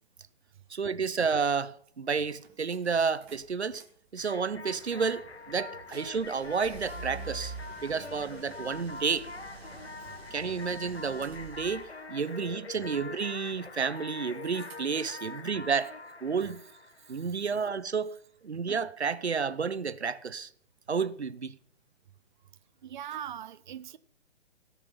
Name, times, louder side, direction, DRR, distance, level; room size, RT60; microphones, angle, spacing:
voice 1, 0.7-3.8 4.1-7.5 7.8-9.3 10.3-15.9 16.2-16.6 17.1-18.2 18.4-20.5 20.9-21.6, right 5 dB, 80° right, 0.8 m, -31 dB
sound 1, 1.9-2.0 2.3-3.8 4.2-11.9 13.4-14.1 14.4-15.4, right 3 dB, 5° right, 0.4 m, -47 dB
sound 2, 4.2-17.6, left 3 dB, 75° left, 1.3 m, -44 dB
voice 2, 17.0-17.4 22.8-24.0, right 10 dB, 45° right, 0.6 m, -41 dB
17.0 x 5.9 x 7.2 m
figure-of-eight pair, 130°, 32 cm